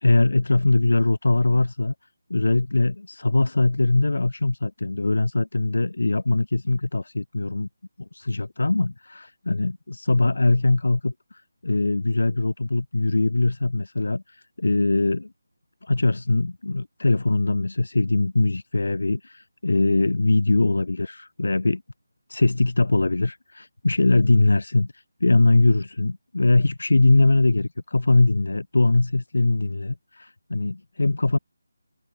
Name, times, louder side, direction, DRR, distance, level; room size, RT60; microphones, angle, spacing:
voice 1, 0.0-1.9 2.3-7.7 8.1-15.3 15.8-21.8 22.3-31.4, left 2 dB, 80° left, 1.5 m, -21 dB
figure-of-eight pair, 170°, 0 cm